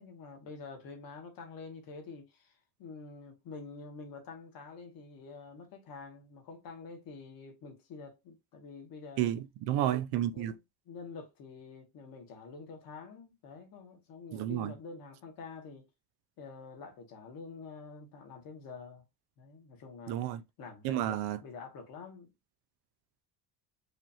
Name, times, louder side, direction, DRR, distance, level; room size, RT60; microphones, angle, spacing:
voice 1, 0.0-9.3 10.3-15.9 16.4-19.0 19.4-22.3, left 4 dB, 50° left, 1.3 m, -47 dB
voice 2, 9.2-10.5 14.3-14.7 20.1-20.4 20.8-21.4, right 12 dB, 60° right, 0.5 m, -31 dB
4.9 x 2.5 x 2.8 m
cardioid pair, 170°, 44 cm